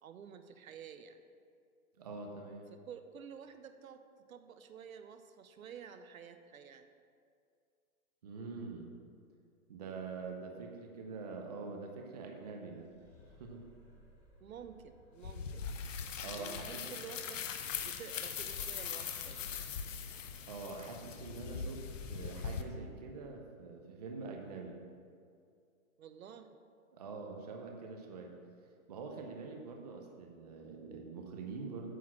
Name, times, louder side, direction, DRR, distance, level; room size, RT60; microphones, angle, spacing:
voice 1, 0.0-1.2 2.7-4.0 4.3-6.9 14.4-15.6 16.4-17.4 17.8-19.6 26.0-26.5, right 7 dB, 70° right, 8 dB, 0.7 m, -50 dB
voice 2, 2.0-2.7 8.2-8.9 9.7-12.9 13.4-13.6 16.2-16.8 20.4-24.8 26.9-28.3 28.9-31.9, right 4 dB, 30° right, 2 dB, 0.6 m, -45 dB
sound 1, 12.8-15.8, left 1 dB, 5° left, 0.8 m, -62 dB
sound 2, 15.2-22.6, left 7 dB, 60° left, 0.8 m, -41 dB
9.2 x 4.1 x 7.3 m, 2.3 s
hypercardioid pair, 165°, 43 cm